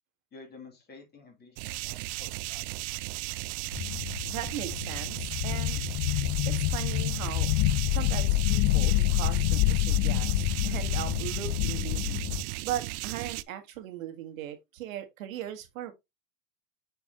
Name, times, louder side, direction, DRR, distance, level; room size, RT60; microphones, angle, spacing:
voice 1, 0.3-2.7, left 3 dB, 25° left, 2.9 m, -51 dB
sound 1, 1.6-13.4, right 19 dB, 55° right, 0.5 m, -36 dB
sound 2, 3.7-12.4, left 16 dB, 50° left, 0.6 m, -27 dB
voice 2, 4.2-5.2 5.4-5.8 6.4-7.5 7.9-10.3 10.6-12.2 12.6-15.9, right 11 dB, 85° right, 1.6 m, -38 dB
7.0 x 4.7 x 2.9 m
supercardioid pair, 130°, 39 cm